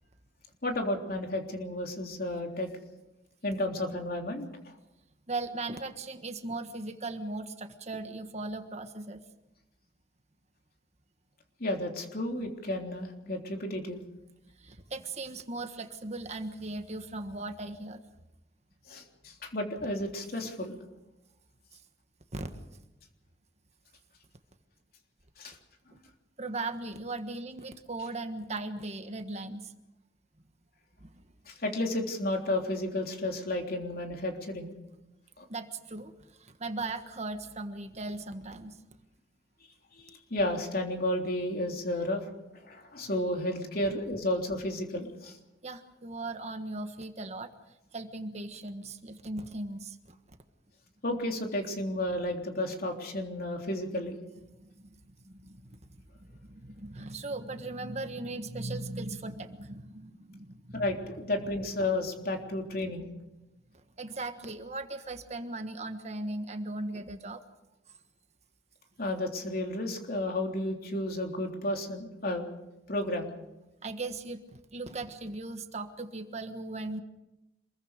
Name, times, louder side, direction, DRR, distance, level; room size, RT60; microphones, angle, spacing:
voice 1, 0.6-2.7 3.4-4.5 11.6-14.0 18.9-20.7 25.4-25.6 31.5-34.7 35.4-35.5 40.0-42.3 42.6-45.4 51.0-54.2 60.7-63.1 69.0-72.4 72.9-73.3, left 1 dB, 55° left, 2 dB, 3.5 m, -32 dB
voice 2, 5.3-9.2 14.6-18.0 22.3-22.6 26.4-29.7 31.0-31.2 35.5-38.8 43.8-43.9 45.6-47.5 47.9-50.2 54.6-60.9 64.0-67.4 73.8-77.0, right 2 dB, 40° right, 7 dB, 1.5 m, -38 dB
27.0 x 22.0 x 5.2 m, 0.95 s
head